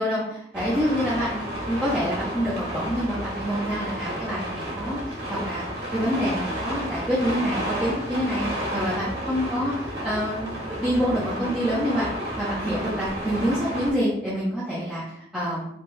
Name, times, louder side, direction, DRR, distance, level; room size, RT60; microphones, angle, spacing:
voice 1, 0.0-1.4 1.7-5.6 5.9-8.5 8.7-12.1 12.4-15.7, equal, 5° right, -9 dB, 0.8 m, -27 dB
sound 1, 0.5-13.9, equal, 80° right, 1.6 m, -31 dB
3.5 x 2.5 x 4.5 m, 0.75 s
head